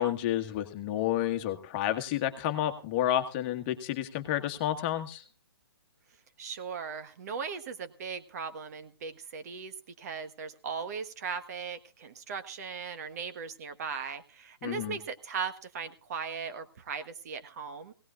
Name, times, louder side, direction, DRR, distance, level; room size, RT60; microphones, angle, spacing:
voice 1, 0.0-5.2 14.6-15.0, left 12 dB, 25° left, 7 dB, 1.4 m, -30 dB
voice 2, 6.4-17.9, right 6 dB, 40° right, 10 dB, 1.4 m, -38 dB
18.0 x 17.5 x 2.4 m, 0.33 s
hypercardioid pair, 160°, 13 cm